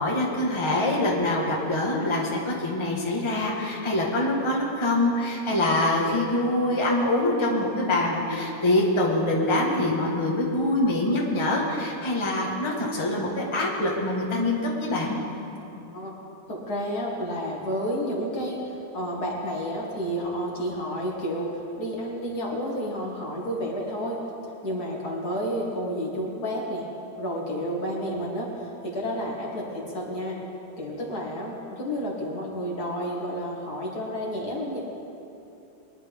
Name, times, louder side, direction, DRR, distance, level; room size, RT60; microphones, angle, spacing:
voice 1, 0.0-15.2, left 1 dB, 20° left, -3 dB, 1.5 m, -24 dB
voice 2, 15.8-16.1 16.5-24.2 24.6-26.9 27.2-30.4 30.8-34.8, equal, 65° left, -3 dB, 2.7 m, -30 dB
22.5 x 11.0 x 3.6 m, 2.9 s
omnidirectional pair, 1.8 m